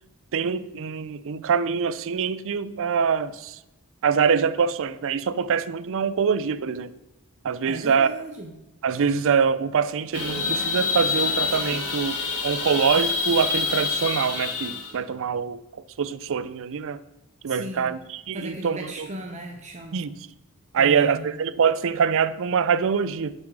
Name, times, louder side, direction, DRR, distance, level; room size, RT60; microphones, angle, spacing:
voice 1, 0.3-3.6 4.0-6.9 7.4-8.1 8.8-12.2 12.4-15.6 16.0-17.0 17.4-19.1 19.9-20.1 20.7-23.3, right 6 dB, 65° right, 16 dB, 0.5 m, -24 dB
voice 2, 7.7-8.5 17.5-18.0 18.3-20.1 20.8-21.3, right 1 dB, 30° right, 3 dB, 0.8 m, -37 dB
sound 1, 10.1-14.9, left 4 dB, 75° left, 1.9 m, -27 dB
7.6 x 6.2 x 6.0 m, 0.93 s
head